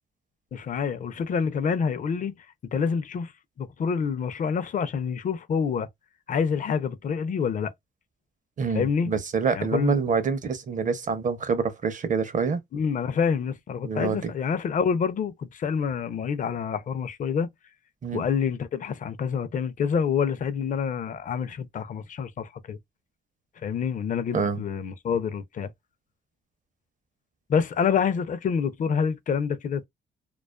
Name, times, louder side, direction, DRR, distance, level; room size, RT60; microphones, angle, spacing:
voice 1, 0.5-2.3 2.7-3.3 3.6-5.9 6.3-7.7 8.7-9.1 9.5-10.0 12.7-17.5 18.1-22.8 23.6-25.7 27.5-29.8, left 6 dB, 40° left, 0.4 m, -27 dB
voice 2, 8.6-12.6 13.8-14.3 18.0-18.2 24.3-24.6, right 5 dB, 40° right, 0.6 m, -26 dB
2.3 x 2.3 x 2.3 m
cardioid pair, 90°, 20 cm